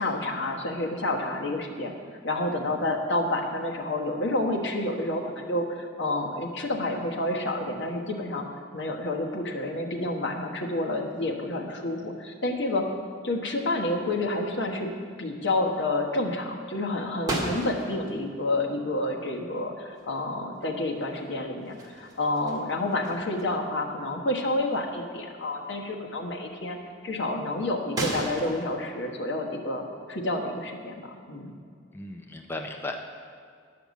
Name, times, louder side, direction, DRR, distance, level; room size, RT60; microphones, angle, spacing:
voice 1, 0.0-1.9 2.2-8.4 8.7-12.9 13.2-14.9 15.2-26.8 27.0-31.5, left 2 dB, 65° left, 1 dB, 1.2 m, -29 dB
sound 1, 17.3-18.2 20.0-20.1 20.5-21.3 21.6-23.6 24.0-24.2 24.8-24.9 28.0-28.6, right 1 dB, 20° right, 1.6 m, -34 dB
voice 2, 31.9-33.0, left 2 dB, 10° left, 2 dB, 0.5 m, -36 dB
10.5 x 5.8 x 8.2 m, 2.2 s
head